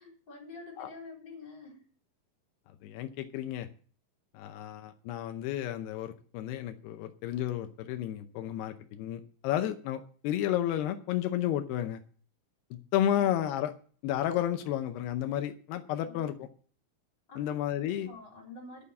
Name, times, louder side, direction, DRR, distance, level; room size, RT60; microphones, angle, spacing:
voice 1, 0.0-1.8 13.1-13.3 16.0-16.3 17.3-17.5 17.9-18.8, left 3 dB, 25° left, 0 dB, 4.9 m, -47 dB
voice 2, 2.8-3.7 4.3-12.0 12.7-13.7 14.0-16.5 17.4-18.1, left 11 dB, 85° left, 8 dB, 2.9 m, -32 dB
11.5 x 6.9 x 8.4 m, 0.43 s
omnidirectional pair, 4.6 m